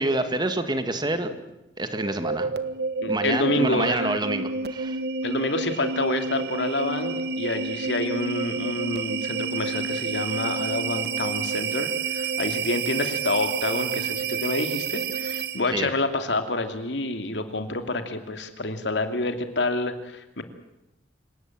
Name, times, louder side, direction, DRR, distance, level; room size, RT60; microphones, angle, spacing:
voice 1, 0.0-1.4 1.8-2.5 3.1-5.0 15.7-15.9, right 2 dB, 25° right, 9 dB, 2.0 m, -27 dB
sound 1, 1.9-15.8, right 4 dB, 60° right, 1.4 m, -29 dB
voice 2, 3.0-4.2 5.2-20.4, left 2 dB, 80° left, 7 dB, 2.7 m, -28 dB
27.0 x 18.0 x 8.9 m, 0.94 s
head